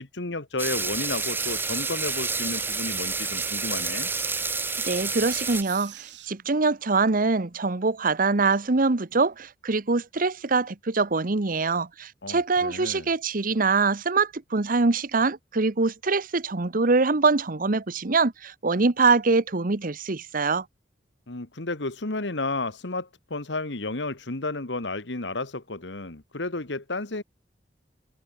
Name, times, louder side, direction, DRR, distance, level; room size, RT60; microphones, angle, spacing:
voice 1, 0.0-4.1 12.2-13.1 21.3-27.2, left 2 dB, 80° left, 2.0 m, -32 dB
sound 1, 0.6-5.6, right 4 dB, 10° right, 0.7 m, -29 dB
sound 2, 1.1-6.3, right 14 dB, 80° right, 4.2 m, -43 dB
voice 2, 4.8-20.6, right 3 dB, 50° right, 1.0 m, -24 dB
head